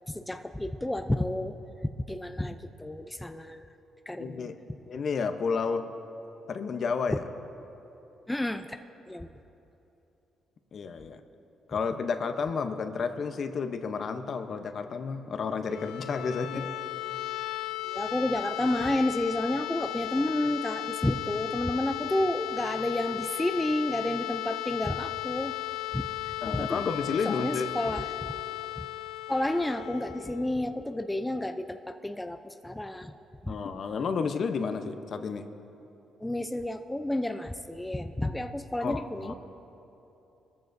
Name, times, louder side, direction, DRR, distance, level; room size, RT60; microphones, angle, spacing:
voice 1, 0.1-1.6 1.8-3.7 4.1-4.5 7.1-7.2 8.3-8.7 9.1-9.3 16.5-16.6 17.8-25.5 25.9-26.1 26.5-26.8 27.2-28.1 28.8-28.9 29.3-33.2 33.4-33.5 36.2-39.3, left 1 dB, 10° left, 7 dB, 0.5 m, -30 dB
voice 2, 4.2-4.6 4.9-5.9 6.5-7.2 10.7-11.2 11.7-16.7 26.4-27.7 33.5-35.4 38.8-39.3, left 5 dB, 55° left, 8 dB, 0.8 m, -31 dB
sound 1, 15.6-31.3, left 16 dB, 80° left, 0.4 m, -36 dB
20.0 x 14.0 x 2.6 m, 3.0 s
cardioid pair, 90°, 0 cm